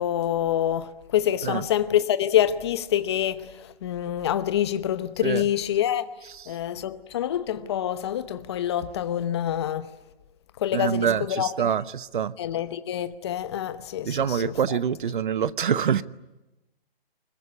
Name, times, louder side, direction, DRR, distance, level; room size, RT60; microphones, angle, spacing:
voice 1, 0.0-6.0 6.5-9.9 10.6-11.5 12.4-14.8, left 11 dB, 25° left, 0.9 m, -26 dB
voice 2, 10.7-12.3 14.0-16.0, right 8 dB, 55° right, 0.9 m, -25 dB
25.0 x 21.5 x 9.8 m
hypercardioid pair, 160°, 31 cm